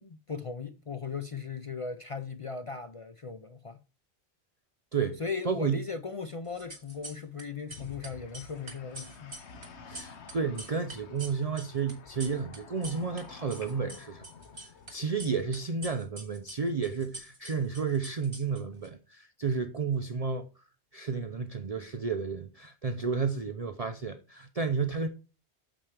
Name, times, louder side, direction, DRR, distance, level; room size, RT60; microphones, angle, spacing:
voice 1, 0.0-3.8 5.2-9.4, left 5 dB, 40° left, 0.5 m, -38 dB
voice 2, 4.9-5.8 9.9-14.3 14.9-20.5 20.9-25.1, right 5 dB, 40° right, 0.6 m, -32 dB
sound 1, 6.5-7.4 7.7-13.2 13.5-14.9 15.2-18.9, right 2 dB, 60° right, 2.4 m, -45 dB
sound 2, 7.7-14.9, left 5 dB, 85° left, 1.3 m, -50 dB
8.8 x 6.9 x 3.3 m
omnidirectional pair, 1.1 m